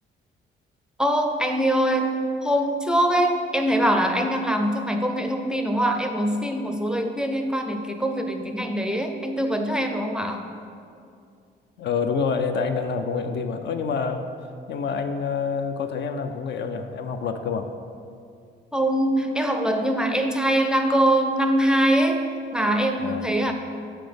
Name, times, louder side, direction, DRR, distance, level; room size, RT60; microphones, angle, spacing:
voice 1, 1.0-10.4 18.7-22.2 22.5-23.5, right 1 dB, 5° right, 4 dB, 0.5 m, -23 dB
voice 2, 11.8-14.2 14.7-17.7 23.0-23.3, left 5 dB, 60° left, 7 dB, 0.5 m, -27 dB
5.9 x 4.2 x 5.1 m, 2.4 s
cardioid pair, 90°, 20 cm